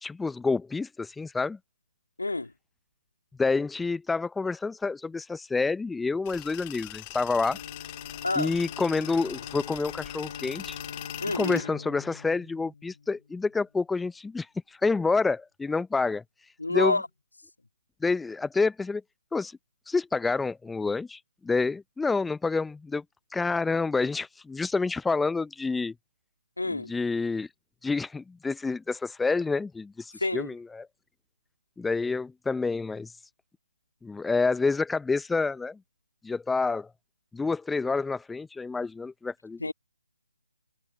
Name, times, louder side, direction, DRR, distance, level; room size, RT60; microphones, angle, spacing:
voice 1, 0.0-1.6 3.4-7.6 8.4-10.8 11.4-16.2 16.7-17.0 18.0-19.0 19.3-19.6 19.9-23.0 23.3-25.9 26.7-27.5 27.8-30.9 31.8-33.1 34.0-35.8 36.2-36.9 37.3-39.7, left 4 dB, 5° left, 0.5 m, -28 dB
voice 2, 2.2-2.5 8.2-8.5 11.2-11.7 16.6-17.1 26.6-26.9 30.2-30.5 39.6-39.7, left 2 dB, 75° left, 2.3 m, -28 dB
Tools, 6.3-11.6, left 26 dB, 20° left, 1.9 m, -42 dB
Bowed string instrument, 7.4-13.6, left 5 dB, 50° left, 1.3 m, -43 dB
figure-of-eight pair, 150°, 0 cm